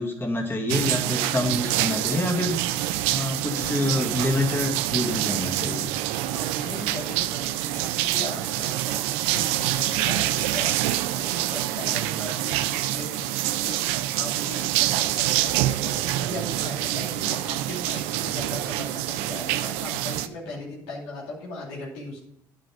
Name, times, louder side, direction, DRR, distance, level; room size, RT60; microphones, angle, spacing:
voice 1, 0.0-2.6 3.1-5.9, left 1 dB, 20° left, 0 dB, 2.1 m, -27 dB
sound 1, 0.7-20.3, right 14 dB, 85° right, 0.5 m, -26 dB
voice 2, 6.3-22.2, left 2 dB, 85° left, -3 dB, 2.5 m, -38 dB
9.2 x 6.4 x 4.9 m, 0.76 s
hypercardioid pair, 60°, 10 cm